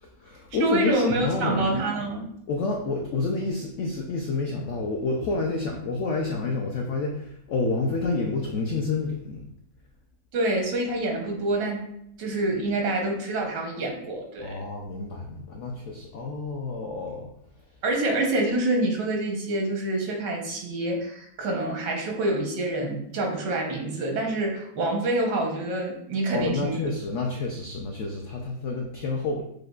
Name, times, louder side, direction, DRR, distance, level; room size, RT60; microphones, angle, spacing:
voice 1, 0.0-1.6 2.5-9.5 14.4-17.3 26.3-29.4, left 3 dB, 85° left, 0 dB, 0.6 m, -29 dB
voice 2, 0.6-2.3 10.3-11.9 12.2-14.6 17.8-26.8, right 2 dB, 90° right, 1 dB, 1.5 m, -27 dB
6.3 x 2.2 x 2.3 m, 0.72 s
omnidirectional pair, 1.8 m